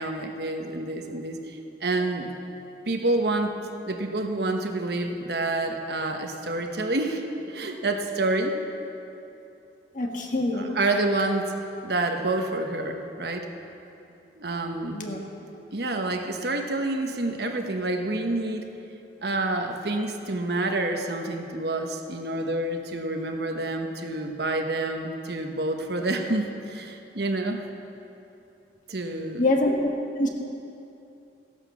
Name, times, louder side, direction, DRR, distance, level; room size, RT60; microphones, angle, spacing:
voice 1, 0.0-2.3 2.9-3.6 3.8-8.6 10.5-11.5 11.8-13.5 14.4-15.0 15.7-18.7 19.2-27.6 28.9-29.4, right 2 dB, 65° right, 4 dB, 1.2 m, -28 dB
voice 2, 9.9-10.8 14.9-15.2 29.4-29.9 30.2-30.3, left 2 dB, 45° left, 1 dB, 1.6 m, -24 dB
15.5 x 11.0 x 7.1 m, 2.8 s
head